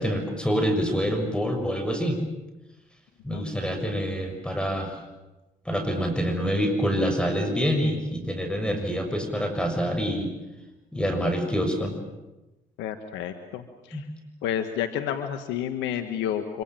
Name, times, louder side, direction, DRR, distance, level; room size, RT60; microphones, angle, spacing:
voice 1, 0.0-2.2 3.2-5.0 5.6-10.3 10.9-11.9 13.9-14.0, equal, 5° left, 5 dB, 6.7 m, -26 dB
voice 2, 12.8-14.1 14.4-16.6, left 9 dB, 85° left, 8 dB, 1.4 m, -30 dB
25.5 x 25.0 x 7.6 m, 1.1 s
supercardioid pair, 55°, 19 cm